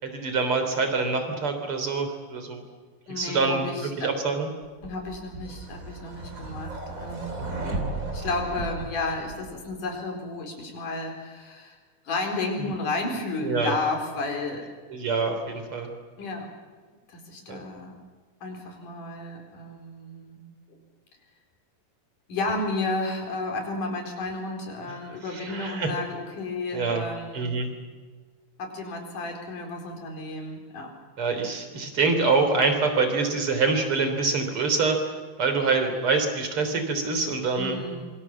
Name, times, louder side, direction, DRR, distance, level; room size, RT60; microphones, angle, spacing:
voice 1, 0.0-2.6 3.2-4.5 7.6-7.8 12.6-12.7 13.4-13.7 14.9-15.9 17.5-17.6 25.3-25.9 26.7-27.0 27.3-27.7 31.2-35.1 35.4-37.8, right 4 dB, 45° right, 7 dB, 4.1 m, -25 dB
voice 2, 3.1-4.1 4.8-7.5 8.1-11.8 12.1-14.7 15.0-15.1 16.2-16.5 17.1-18.0 18.4-20.4 20.7-20.8 22.3-27.5 28.6-30.9 37.5-38.1, left 3 dB, 85° left, 2 dB, 5.9 m, -32 dB
sound 1, 4.8-9.8, right 2 dB, 25° right, 3.3 m, -35 dB
26.5 x 24.5 x 7.4 m, 1.5 s
omnidirectional pair, 3.6 m